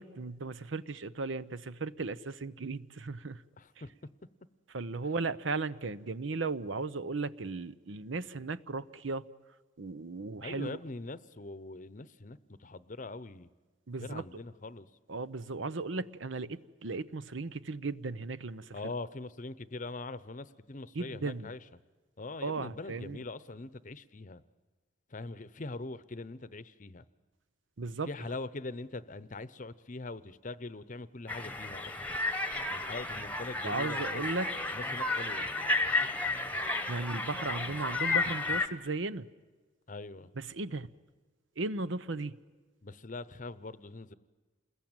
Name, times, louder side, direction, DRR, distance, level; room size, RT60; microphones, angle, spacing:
voice 1, 0.0-3.4 4.7-9.3 9.8-10.8 13.9-14.2 15.1-18.8 20.9-21.5 22.4-23.2 27.8-28.1 33.6-34.5 36.9-39.3 40.4-40.9 41.6-42.4, right 3 dB, 75° right, 0.8 m, -36 dB
voice 2, 3.6-3.9 10.4-13.5 14.0-14.9 18.7-21.6 22.2-24.4 25.1-27.0 28.0-32.1 32.7-34.2 34.7-35.5 39.9-40.3 42.8-44.1, left 2 dB, 40° left, 0.8 m, -42 dB
sound 1, 31.3-38.7, left 3 dB, 10° left, 1.1 m, -32 dB
28.5 x 21.0 x 9.0 m
head